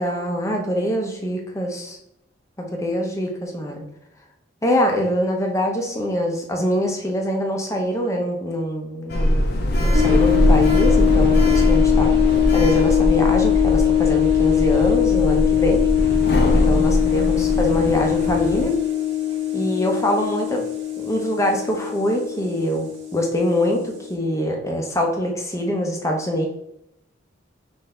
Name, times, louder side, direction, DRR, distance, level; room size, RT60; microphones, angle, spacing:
voice 1, 0.0-2.0 2.6-3.8 4.6-9.4 9.8-12.1 12.5-15.8 16.4-18.7 19.5-20.7 21.0-26.5, equal, 15° left, 2 dB, 0.7 m, -24 dB
Sliding door, 9.1-18.6, equal, 55° left, 0.6 m, -21 dB
sound 1, 9.9-24.1, left 13 dB, 60° right, 1.3 m, -21 dB
5.6 x 2.7 x 3.4 m, 0.81 s
head